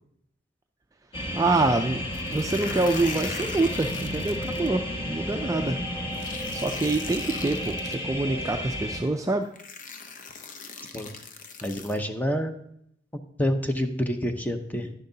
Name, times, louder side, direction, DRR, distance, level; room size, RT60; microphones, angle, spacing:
sound 1, 1.1-9.0, equal, 30° left, 1.6 m, -32 dB
voice 1, 1.3-2.0 2.3-5.8 6.5-9.5, right 2 dB, 15° right, 5 dB, 0.3 m, -26 dB
sound 2, 2.1-4.7 6.1-8.0 9.0-9.1 9.5-12.0, left 5 dB, 45° left, 0.7 m, -40 dB
voice 2, 11.6-12.5 13.4-14.9, equal, 10° left, 6 dB, 0.7 m, -27 dB
10.5 x 10.5 x 2.7 m, 0.74 s
head